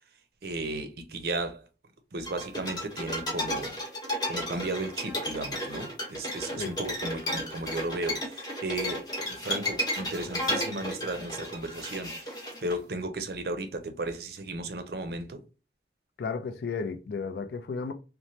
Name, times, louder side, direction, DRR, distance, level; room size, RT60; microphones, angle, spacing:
voice 1, 0.4-1.7 2.1-3.8 4.3-9.0 9.3-12.2 12.6-15.4, right 2 dB, 60° right, 0.5 m, -35 dB
sound 1, 2.3-12.7, left 1 dB, 25° left, 0.9 m, -33 dB
voice 2, 16.2-17.9, left 5 dB, 65° left, 0.4 m, -33 dB
3.1 x 2.1 x 2.7 m
head